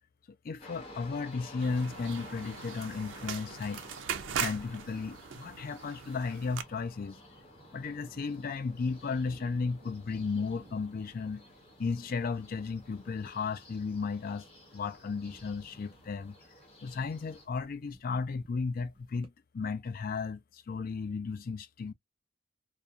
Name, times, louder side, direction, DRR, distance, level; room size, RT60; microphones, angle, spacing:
voice 1, 0.4-3.8 4.3-7.2 7.7-11.4 11.8-14.5 14.7-16.4 16.8-21.9, left 4 dB, 50° left, 0.4 m, -34 dB
sound 1, 0.6-17.5, left 1 dB, 30° left, 1.1 m, -53 dB
sound 2, 1.6-6.6, right 8 dB, 75° right, 0.4 m, -39 dB
sound 3, 6.0-19.3, right 1 dB, 25° right, 0.6 m, -59 dB
2.4 x 2.2 x 2.7 m
head